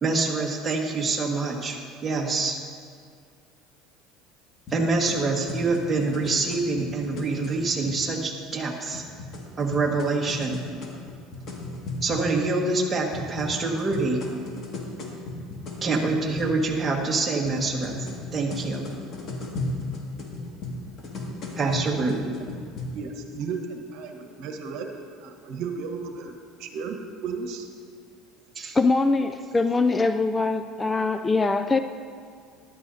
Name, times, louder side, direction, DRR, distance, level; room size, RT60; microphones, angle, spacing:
voice 1, 0.0-2.6 4.7-9.0 9.6-10.6 12.0-14.2 15.8-18.8 21.5-22.3 28.5-28.8, right 3 dB, 20° right, -1 dB, 1.6 m, -26 dB
sound 1, 4.7-8.0 8.9-12.3 13.1-16.6 17.5-22.9, left 2 dB, 50° left, 2.0 m, -36 dB
voice 2, 21.9-22.2 22.9-24.9 25.2-26.3 26.6-27.7, right 5 dB, 70° right, 4 dB, 1.2 m, -34 dB
voice 3, 28.7-31.8, left 3 dB, 15° left, 9 dB, 0.3 m, -22 dB
14.0 x 11.5 x 2.8 m, 2.2 s
supercardioid pair, 120°, 0 cm